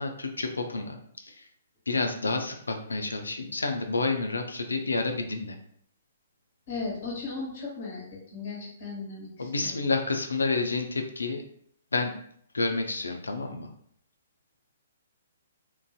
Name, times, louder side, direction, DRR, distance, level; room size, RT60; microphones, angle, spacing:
voice 1, 0.0-1.5 1.9-5.6 9.4-11.4 11.9-12.1 12.5-13.7, left 3 dB, 75° left, 5 dB, 0.4 m, -29 dB
voice 2, 6.7-8.1 8.3-9.8, left 4 dB, 50° left, -4 dB, 1.1 m, -36 dB
2.5 x 2.3 x 2.3 m, 0.65 s
figure-of-eight pair, 120°, 0 cm